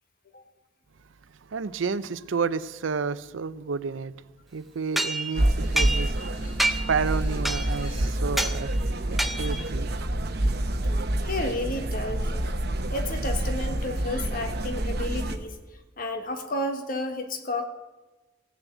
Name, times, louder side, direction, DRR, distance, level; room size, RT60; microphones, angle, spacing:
voice 1, 1.5-4.1 4.5-6.2 6.9-8.7 9.1-10.1, right 5 dB, 80° right, 15 dB, 0.5 m, -30 dB
sound 1, 5.0-6.3 6.6-7.0 7.5-7.9 8.4-8.6 9.2-9.7, right 1 dB, ahead, 0.6 m, -28 dB
sound 2, 5.3-15.4, right 1 dB, 55° right, 1.0 m, -27 dB
sound 3, 5.6-8.7, left 1 dB, 75° left, 4.8 m, -49 dB
voice 2, 11.2-12.5 12.9-15.6 16.0-17.6, left 1 dB, 45° left, 6 dB, 1.4 m, -31 dB
16.5 x 7.2 x 8.2 m, 1.2 s
head